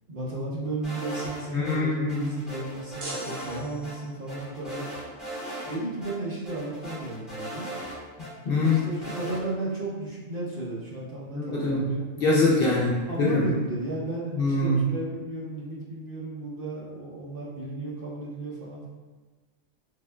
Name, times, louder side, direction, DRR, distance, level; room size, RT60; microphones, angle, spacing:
voice 1, 0.1-4.9 5.7-7.7 8.5-12.0 13.1-18.9, right 2 dB, 55° right, -5 dB, 0.7 m, -34 dB
sound 1, 0.8-1.7 2.1-3.6 3.8-3.9 4.3-5.8 6.0-6.1 6.4-8.3 8.6-9.4, right 1 dB, ahead, 1.0 m, -38 dB
voice 2, 1.5-2.3 8.5-8.9 11.3-11.9 12.2-13.4 14.4-14.8, left 2 dB, 60° left, -5 dB, 0.6 m, -24 dB
sound 2, 3.0-4.3, right 2 dB, 75° right, 1.0 m, -40 dB
3.6 x 3.1 x 2.2 m, 1.3 s
omnidirectional pair, 1.3 m